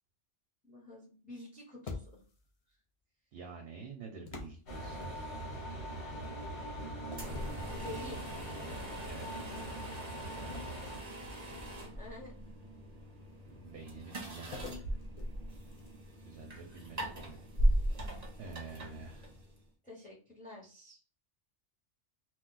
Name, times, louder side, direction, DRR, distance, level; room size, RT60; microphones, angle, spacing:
voice 1, 0.6-2.2 7.7-8.2 12.0-12.3 19.8-21.0, left 1 dB, 5° left, -3 dB, 1.1 m, -48 dB
sound 1, 1.9-2.5 4.3-5.6 7.1-8.5 8.9-9.2 10.5-12.0 14.5-16.2, left 4 dB, 50° left, 0.4 m, -48 dB
voice 2, 3.3-5.2 9.1-9.8 10.1-10.5 13.4-14.7 16.2-17.4 17.9-18.1 18.4-19.3, right 4 dB, 65° right, 2 dB, 0.7 m, -49 dB
sound 2, 4.7-11.0, right 1 dB, 65° left, 1.5 m, -42 dB
sound 3, 7.1-19.7, equal, 40° right, 0.9 m, -38 dB
2.4 x 2.3 x 3.8 m, 0.38 s
omnidirectional pair, 1.2 m